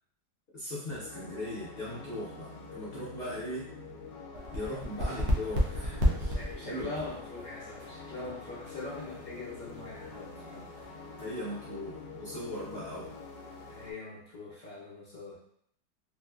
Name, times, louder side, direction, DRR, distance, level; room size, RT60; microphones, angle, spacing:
voice 1, 0.5-3.8 4.5-6.2 6.6-6.9 11.2-13.1, left 1 dB, 55° left, -8 dB, 0.7 m, -39 dB
sound 1, 0.9-13.9, left 4 dB, 75° left, 1.1 m, -46 dB
sound 2, 1.5-2.8 5.3-6.6 9.6-10.9, right 2 dB, 65° right, 0.7 m, -55 dB
sound 3, 4.3-11.2, equal, 80° right, 1.4 m, -34 dB
voice 2, 6.2-10.7 13.6-15.4, left 3 dB, 30° left, -9 dB, 1.0 m, -42 dB
3.8 x 2.3 x 2.2 m, 0.68 s
omnidirectional pair, 1.8 m